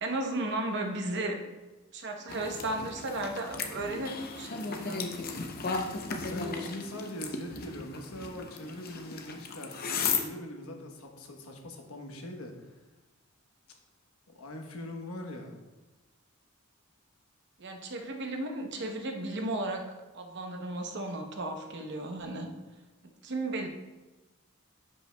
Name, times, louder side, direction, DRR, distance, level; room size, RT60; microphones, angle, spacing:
voice 1, 0.0-1.4 1.9-5.1 17.6-19.8 20.1-22.5 23.2-23.7, right 2 dB, 55° right, 3 dB, 0.9 m, -34 dB
sound 1, 2.3-10.2, left 4 dB, 45° left, 0.6 m, -35 dB
voice 2, 6.2-12.5 14.3-15.5, left 1 dB, 85° left, 3 dB, 1.1 m, -42 dB
10.0 x 5.4 x 2.2 m, 1.1 s
head